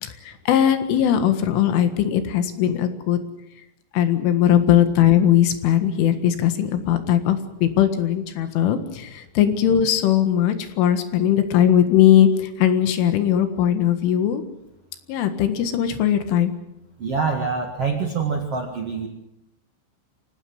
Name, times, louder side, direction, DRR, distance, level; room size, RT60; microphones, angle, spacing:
voice 1, 0.0-3.2 3.9-14.4 15.1-16.5, left 10 dB, 75° left, 9 dB, 4.1 m, -19 dB
voice 2, 17.0-19.1, right 5 dB, 55° right, 2 dB, 1.7 m, -25 dB
25.0 x 18.5 x 7.9 m, 0.85 s
omnidirectional pair, 5.7 m